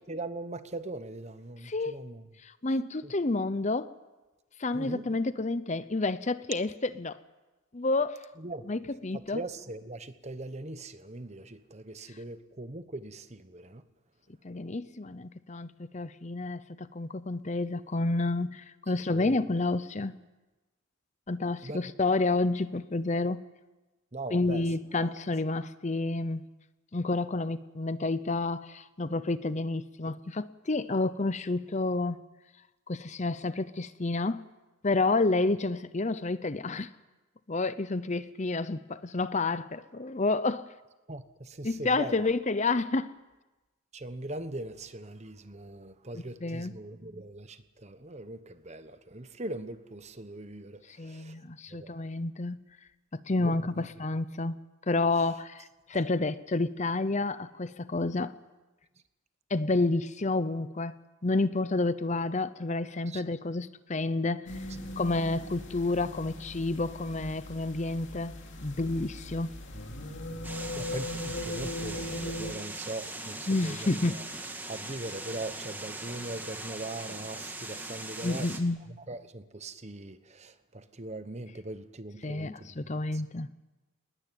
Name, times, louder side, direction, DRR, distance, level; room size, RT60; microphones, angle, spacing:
voice 1, 0.1-2.3 3.0-3.1 4.7-5.1 8.4-8.6 9.3-13.8 19.1-19.4 21.6-21.8 24.1-24.6 24.9-25.1 41.1-42.3 43.9-51.4 51.8-51.9 53.4-53.9 63.1-63.2 70.5-74.2 74.7-78.6 79.1-83.2, right 2 dB, 30° right, 1.1 m, -41 dB
voice 2, 1.6-2.0 2.4-3.9 4.6-7.2 7.7-8.3 8.7-9.4 12.1-12.2 14.4-20.1 21.3-23.4 24.3-26.4 26.9-32.2 32.9-34.4 34.8-36.9 37.5-40.7 41.6-43.1 46.4-46.7 50.9-52.6 53.3-54.6 54.9-58.4 59.5-60.9 61.2-64.6 65.0-68.3 68.6-69.5 73.5-74.2 78.2-78.8 82.2-83.5, left 2 dB, 35° left, 0.7 m, -30 dB
sound 1, 64.5-72.5, left 1 dB, 55° left, 3.1 m, -39 dB
sound 2, 70.4-78.6, right 2 dB, 10° right, 1.9 m, -40 dB
21.0 x 20.0 x 9.3 m
head